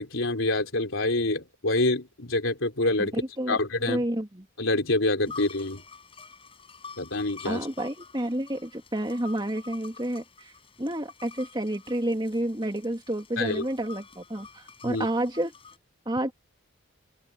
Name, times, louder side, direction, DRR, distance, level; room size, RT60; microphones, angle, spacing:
voice 1, 0.0-3.1 3.5-4.0 4.6-5.8 7.0-7.7 13.4-13.6 14.8-15.1, left 2 dB, 60° left, 3.9 m, -26 dB
voice 2, 3.0-3.6 3.9-4.5 7.4-10.5 10.8-15.5 16.1-16.3, right 1 dB, 20° right, 2.8 m, -30 dB
sound 1, 5.2-15.8, left 5 dB, 25° left, 6.9 m, -48 dB
open air
head